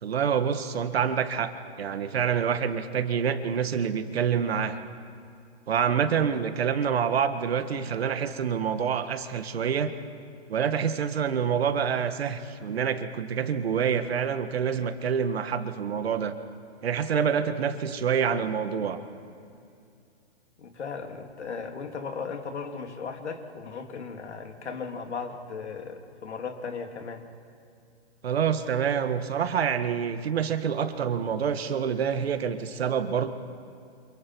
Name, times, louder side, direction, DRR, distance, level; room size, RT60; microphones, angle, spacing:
voice 1, 0.0-1.5 1.8-4.8 5.7-9.9 10.5-16.3 16.8-19.0 28.2-33.3, right 7 dB, 65° right, 9 dB, 1.8 m, -27 dB
voice 2, 20.6-27.2, left 5 dB, 85° left, 4 dB, 3.0 m, -36 dB
29.5 x 27.5 x 4.7 m, 2.5 s
hypercardioid pair, 165°, 33 cm